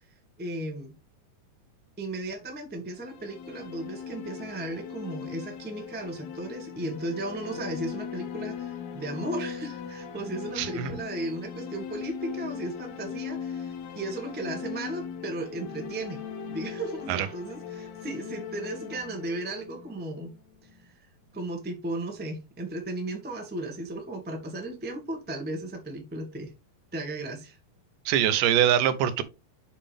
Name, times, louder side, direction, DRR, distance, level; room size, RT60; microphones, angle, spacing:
voice 1, 0.4-0.9 2.0-16.2 16.5-20.3 20.8-20.9 21.3-26.5 26.9-27.6, right 2 dB, 10° right, 0.5 m, -35 dB
sound 1, 2.9-20.8, left 7 dB, 70° left, 1.8 m, -39 dB
voice 2, 10.6-10.9 17.1-17.3 28.1-29.2, right 10 dB, 80° right, 2.4 m, -23 dB
7.3 x 5.8 x 3.4 m
omnidirectional pair, 3.7 m